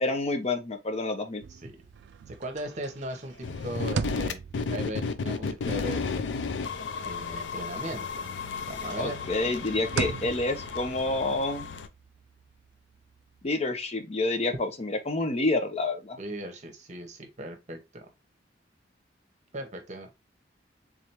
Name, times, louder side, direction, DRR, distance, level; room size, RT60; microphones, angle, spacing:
voice 1, 0.0-1.4 9.0-11.7 13.4-16.2, left 2 dB, 35° left, 0.7 m, -28 dB
sound 1, 1.3-7.8 8.1-13.5, right 5 dB, 65° right, 0.3 m, -40 dB
voice 2, 2.3-4.4 4.7-6.0 7.0-8.3 8.7-9.2 16.2-18.1 19.5-20.1, right 1 dB, 40° right, 0.8 m, -38 dB
sound 2, 3.4-11.9, left 4 dB, 80° left, 0.4 m, -33 dB
3.7 x 3.3 x 2.8 m
head